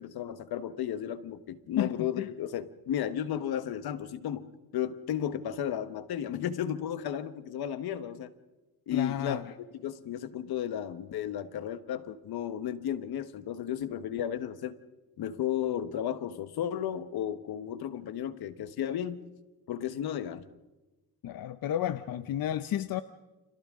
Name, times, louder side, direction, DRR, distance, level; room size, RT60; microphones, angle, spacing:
voice 1, 0.0-8.3 8.9-9.4 9.7-14.8 15.2-19.2 19.7-20.5, left 10 dB, 90° left, 11 dB, 1.3 m, -34 dB
voice 2, 1.8-2.3 8.9-9.4 21.2-23.0, left 11 dB, 70° left, 11 dB, 0.7 m, -32 dB
30.0 x 26.5 x 3.7 m, 1.1 s
cardioid pair, 130°, 37 cm